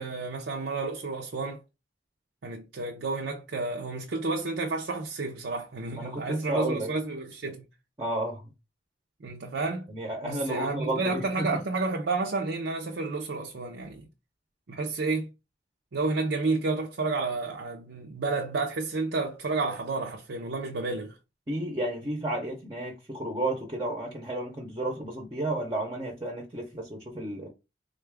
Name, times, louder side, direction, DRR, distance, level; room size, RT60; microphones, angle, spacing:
voice 1, 0.0-1.6 2.4-7.6 9.2-9.9 10.2-14.1 14.7-15.3 15.9-21.1, right 3 dB, 90° right, 0.6 m, -31 dB
voice 2, 6.0-6.9 8.0-8.4 9.9-11.6 21.5-27.5, right 1 dB, 25° right, 0.6 m, -32 dB
3.8 x 2.3 x 3.3 m
head